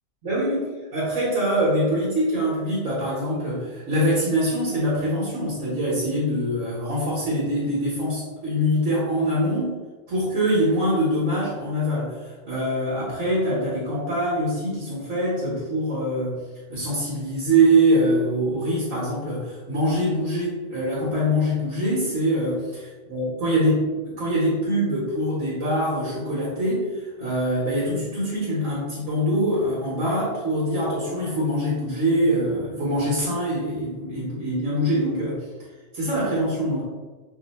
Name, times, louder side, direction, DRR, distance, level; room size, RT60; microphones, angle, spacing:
voice 1, 0.2-9.7 10.1-16.4 16.7-35.4 35.9-36.8, right 1 dB, 75° right, -7 dB, 1.3 m, -24 dB
3.1 x 2.0 x 4.0 m, 1.4 s
omnidirectional pair, 1.4 m